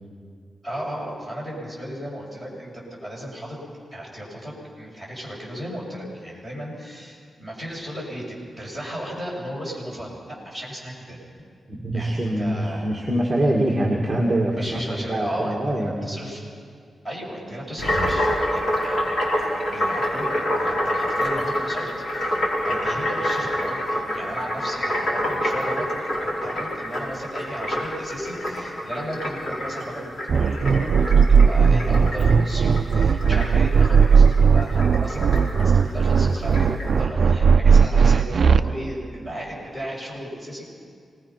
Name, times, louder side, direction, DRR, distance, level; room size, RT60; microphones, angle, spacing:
voice 1, 0.6-3.6 3.9-11.2 11.9-12.9 14.5-16.4 17.0-20.3 20.7-25.9 26.2-36.7 37.0-40.7, equal, 10° left, -4 dB, 6.8 m, -35 dB
voice 2, 11.7-16.2, right 1 dB, 10° right, -2 dB, 2.1 m, -24 dB
sound 1, 17.8-36.9, equal, 55° left, 4.7 m, -27 dB
sound 2, 30.3-38.6, right 6 dB, 50° right, 0.5 m, -17 dB
26.0 x 20.0 x 5.9 m, 2.2 s
wide cardioid pair, 160°, 0 cm